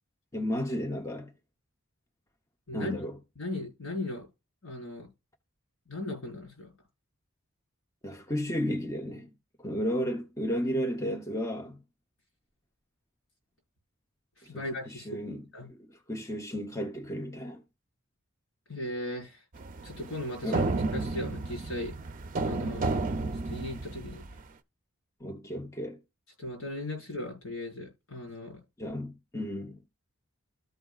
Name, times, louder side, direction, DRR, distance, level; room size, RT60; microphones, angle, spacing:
voice 1, 0.3-1.3 2.7-3.2 8.0-9.3 9.6-11.8 14.4-17.6 20.4-20.7 25.2-26.0 28.8-29.8, equal, 15° left, 0.8 m, -33 dB
voice 2, 3.4-4.3 4.6-5.1 5.9-6.7 14.4-15.2 15.5-15.7 18.7-19.4 19.8-20.6 20.9-21.9 22.4-22.9 23.4-24.2 26.4-28.6, left 1 dB, 85° left, 4.8 m, -37 dB
sound 1, 19.6-24.4, right 3 dB, 40° right, 0.6 m, -32 dB
13.5 x 4.9 x 2.4 m
head